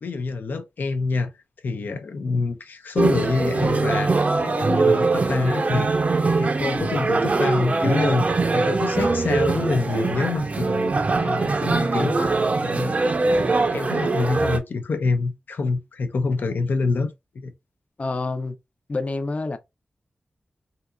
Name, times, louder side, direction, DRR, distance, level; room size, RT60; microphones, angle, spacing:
voice 1, 0.0-1.3 1.6-10.9 11.2-13.0 13.6-17.1 17.3-17.5, left 4 dB, 80° left, 0.6 m, -26 dB
sound 1, 3.0-14.6, right 3 dB, 45° right, 0.5 m, -22 dB
voice 2, 18.0-18.6 18.9-19.6, left 3 dB, 45° left, 0.6 m, -27 dB
3.7 x 2.8 x 2.3 m
wide cardioid pair, 75°, 3 cm